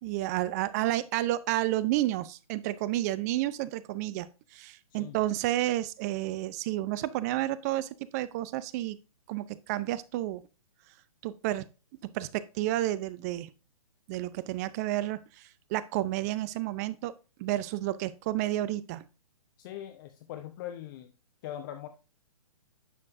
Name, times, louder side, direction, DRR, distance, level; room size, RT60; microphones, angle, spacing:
voice 1, 0.0-9.0 9.3-10.4 11.2-11.7 12.1-13.5 14.1-17.1 17.4-19.0, right 15 dB, 30° right, 17 dB, 0.4 m, -31 dB
voice 2, 19.6-21.1 21.4-21.9, left 11 dB, 35° left, 7 dB, 0.7 m, -41 dB
9.9 x 6.4 x 2.6 m, 0.32 s
hypercardioid pair, 130°, 19 cm